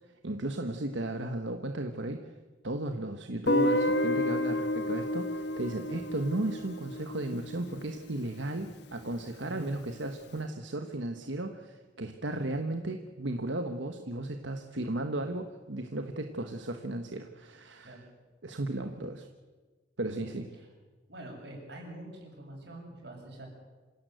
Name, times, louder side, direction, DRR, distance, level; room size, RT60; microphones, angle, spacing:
voice 1, 0.2-2.3 2.6-18.0 18.4-19.3 20.0-20.5, right 1 dB, 80° right, 6 dB, 1.4 m, -35 dB
Guitar, 3.5-8.3, left 1 dB, 65° left, 1.4 m, -30 dB
voice 2, 20.2-20.7 21.1-23.5, right 1 dB, 60° right, 1 dB, 7.1 m, -45 dB
26.5 x 17.0 x 8.0 m, 1.3 s
head